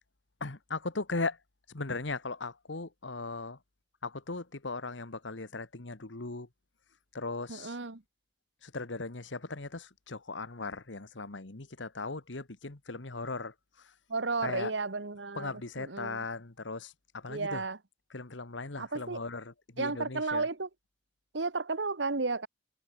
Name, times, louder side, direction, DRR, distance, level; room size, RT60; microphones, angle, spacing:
voice 1, 0.4-1.4 1.7-3.6 4.0-6.5 7.1-7.7 8.6-13.5 14.4-14.7 15.3-16.9 17.2-17.6 18.1-20.4, left 3 dB, 85° left, 1.6 m, -38 dB
voice 2, 7.5-8.0 14.1-16.2 17.3-17.8 18.8-19.2 19.8-20.7 21.3-22.5, right 3 dB, 75° right, 1.4 m, -33 dB
head